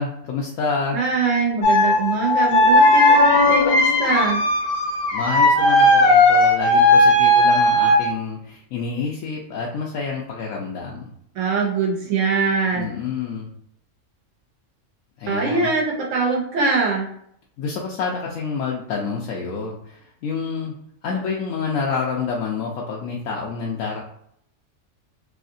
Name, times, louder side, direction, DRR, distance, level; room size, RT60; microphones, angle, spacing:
voice 1, 0.0-1.0 5.1-11.1 12.7-13.5 15.2-15.7 17.6-20.7 21.0-24.0, left 5 dB, 90° left, -3 dB, 1.0 m, -28 dB
voice 2, 0.9-4.4 11.3-12.9 15.3-17.1, right 4 dB, 75° right, -1 dB, 1.2 m, -22 dB
sound 1, 1.6-8.1, left 1 dB, 65° left, 0.9 m, -16 dB
3.2 x 2.7 x 2.5 m, 0.69 s
omnidirectional pair, 1.3 m